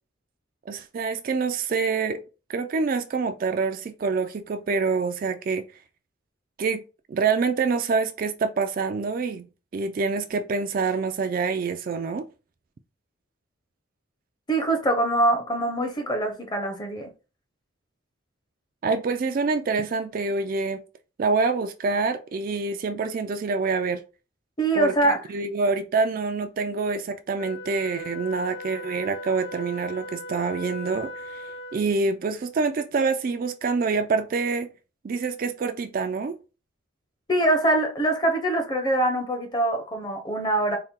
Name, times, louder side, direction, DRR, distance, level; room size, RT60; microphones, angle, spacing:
voice 1, 0.7-2.2 2.5-5.6 6.6-6.8 7.1-9.5 9.7-12.3 18.8-20.8 21.2-24.0 24.7-34.7 35.0-36.4, right 4 dB, 45° right, 0.3 m, -26 dB
voice 2, 14.5-17.1 24.6-25.2 37.3-40.8, right 1 dB, 20° left, 0.7 m, -23 dB
Wind instrument woodwind instrument, 27.4-32.0, left 2 dB, 65° left, 0.7 m, -38 dB
4.3 x 2.1 x 3.6 m
head